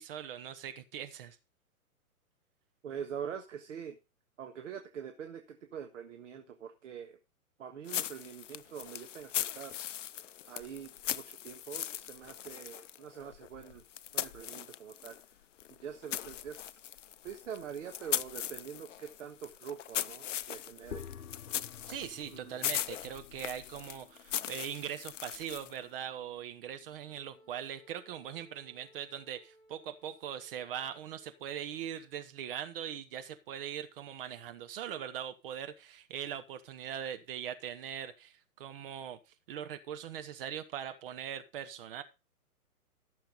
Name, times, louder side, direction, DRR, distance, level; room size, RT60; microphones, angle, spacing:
voice 1, 0.0-1.4 21.9-39.2 39.5-42.0, right 9 dB, 40° right, 9 dB, 1.1 m, -41 dB
voice 2, 2.8-4.0 4.4-7.2 7.6-9.7 10.5-13.8 14.1-15.2 15.7-16.8 17.2-21.0 22.3-22.6, right 8 dB, 55° right, 5 dB, 1.6 m, -44 dB
sound 1, 7.9-15.2 15.6-25.8, left 11 dB, 55° left, 0.6 m, -39 dB
sound 2, 20.9-27.6, left 7 dB, 85° left, 0.8 m, -52 dB
Wind instrument woodwind instrument, 27.0-32.2, right 1 dB, 10° left, 2.6 m, -63 dB
14.5 x 6.8 x 4.0 m, 0.27 s
figure-of-eight pair, 125°, 44 cm